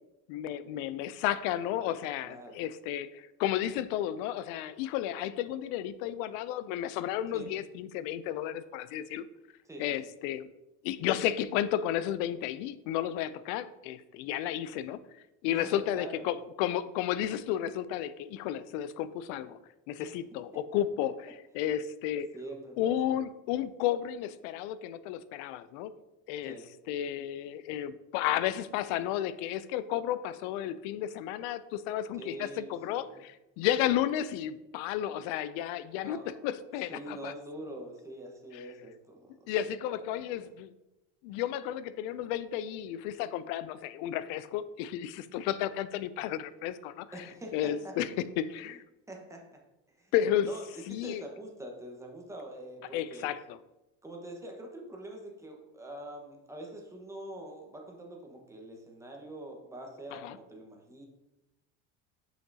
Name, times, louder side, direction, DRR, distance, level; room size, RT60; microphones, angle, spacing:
voice 1, 0.3-9.3 9.8-10.5 10.8-15.0 15.4-19.6 19.9-21.1 21.5-22.3 22.8-25.9 26.3-26.6 26.9-37.3 38.5-38.6 39.5-40.7 41.2-47.1 47.5-48.1 48.4-48.8 50.1-50.5 50.9-51.2 52.9-53.6 60.1-60.4, left 11 dB, 80° left, 15 dB, 0.5 m, -32 dB
voice 2, 2.2-2.6 7.3-7.5 9.6-10.1 15.5-16.3 20.0-20.2 22.3-23.1 26.4-26.7 32.2-33.2 35.9-36.3 36.9-39.5 39.8-40.5 47.1-47.9 48.7-48.8 49.1-49.6 50.0-50.1 50.5-53.3 54.0-61.1, right 1 dB, 10° right, 0 dB, 1.2 m, -45 dB
5.9 x 5.7 x 2.8 m, 0.95 s
supercardioid pair, 105°, 37 cm